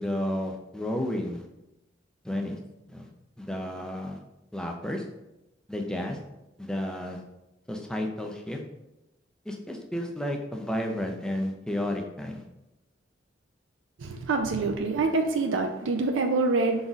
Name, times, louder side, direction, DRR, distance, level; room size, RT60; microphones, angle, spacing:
voice 1, 0.0-1.4 2.2-2.6 2.9-3.1 3.4-4.2 4.5-5.1 5.7-6.2 6.6-7.2 7.7-8.6 9.5-12.4, left 1 dB, 5° left, 2 dB, 0.4 m, -32 dB
voice 2, 14.0-16.9, right 3 dB, 90° right, 4 dB, 0.4 m, -26 dB
5.1 x 3.9 x 2.4 m, 0.94 s
head